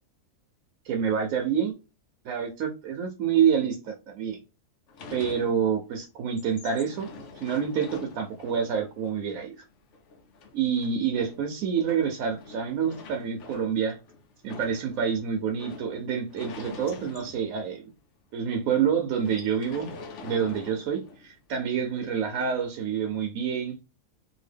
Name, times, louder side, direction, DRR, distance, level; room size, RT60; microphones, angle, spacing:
voice 1, 0.8-1.7 2.2-4.4 5.1-7.1 7.4-9.5 10.5-14.0 14.4-17.8 18.3-19.9 20.2-23.8, right 7 dB, 75° right, 1.0 m, -27 dB
sound 1, 4.9-5.9 6.2-17.9 18.3-18.4 18.6-18.8 19.2-21.4 22.3-22.6, left 4 dB, 65° left, 0.9 m, -45 dB
2.8 x 2.5 x 3.3 m
omnidirectional pair, 1.5 m